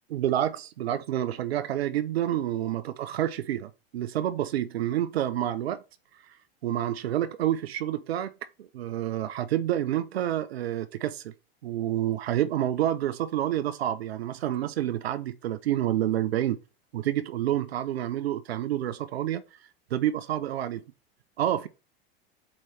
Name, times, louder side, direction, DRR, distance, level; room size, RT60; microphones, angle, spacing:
voice 1, 0.1-5.8 6.6-8.3 8.6-11.3 11.6-16.6 16.9-19.4 19.9-20.8 21.4-21.7, right 12 dB, 80° right, 0.7 m, -28 dB
7.5 x 3.1 x 4.2 m
hypercardioid pair, 90°, 30 cm